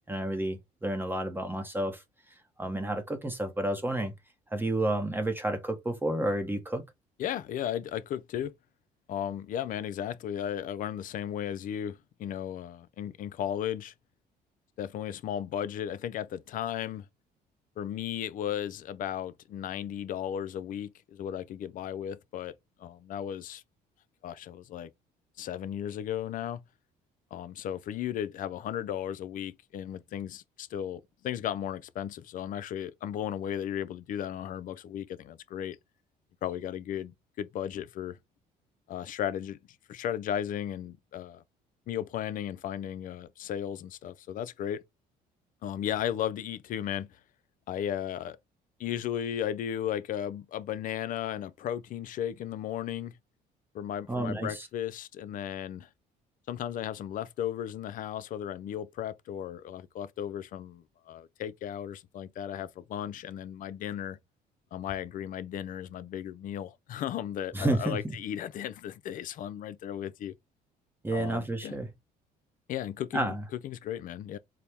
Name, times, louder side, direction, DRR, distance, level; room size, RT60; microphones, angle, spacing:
voice 1, 0.1-2.0 2.6-4.1 4.5-6.8 54.1-54.7 67.5-68.2 71.0-71.9 73.1-73.4, right 1 dB, 10° right, 0.7 m, -30 dB
voice 2, 7.2-8.5 9.1-13.9 14.8-17.1 17.8-22.5 22.8-23.6 24.2-24.9 25.4-26.6 27.3-35.8 36.4-38.2 38.9-39.6 39.9-41.4 41.9-44.8 45.6-47.2 47.7-48.4 48.8-53.2 53.7-55.9 56.5-64.2 64.7-70.3 71.1-71.8 72.7-73.3 73.6-74.4, left 10 dB, 55° left, 0.4 m, -35 dB
4.2 x 2.0 x 3.3 m
cardioid pair, 110°, 17 cm